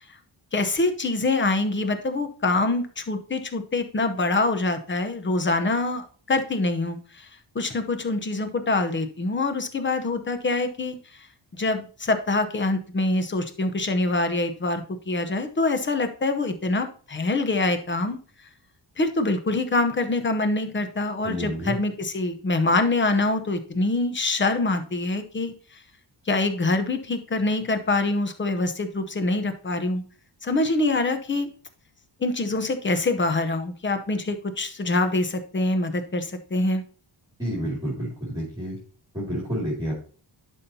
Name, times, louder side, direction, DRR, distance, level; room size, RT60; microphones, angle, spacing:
voice 1, 0.5-7.3 7.5-11.0 11.5-18.2 19.0-25.5 26.3-30.0 30.4-31.5 32.2-36.8, left 2 dB, 25° left, 8 dB, 0.8 m, -25 dB
voice 2, 21.2-21.8 37.4-38.8 39.1-39.9, equal, 10° right, -4 dB, 2.5 m, -29 dB
10.5 x 5.5 x 2.8 m, 0.41 s
wide cardioid pair, 140°, 47 cm